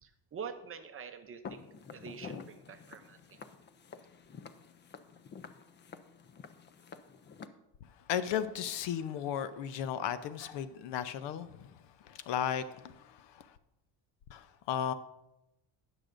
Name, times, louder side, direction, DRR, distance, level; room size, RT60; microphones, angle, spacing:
voice 1, 0.0-1.6 1.9-3.4, right 6 dB, 30° right, 8 dB, 0.6 m, -46 dB
Walk footsteps, 1.4-7.5, left 6 dB, 25° left, 0.3 m, -49 dB
voice 2, 8.1-11.8 12.0-13.5 14.3-14.9, left 9 dB, 65° left, 13 dB, 0.7 m, -35 dB
18.5 x 6.6 x 2.5 m, 0.92 s
cardioid pair, 140°, 46 cm